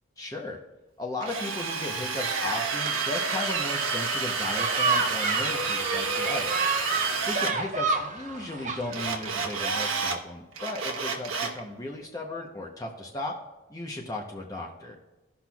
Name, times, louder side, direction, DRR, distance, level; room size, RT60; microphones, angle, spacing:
voice 1, 0.2-0.6 1.0-13.3 13.7-15.0, left 2 dB, 15° left, -1 dB, 0.8 m, -36 dB
Drill, 1.2-7.5 8.9-10.2 10.6-11.6, right 4 dB, 85° right, 1.2 m, -29 dB
sound 1, 4.6-9.6, right 4 dB, 35° right, 0.8 m, -30 dB
17.5 x 5.9 x 2.3 m, 1.1 s
head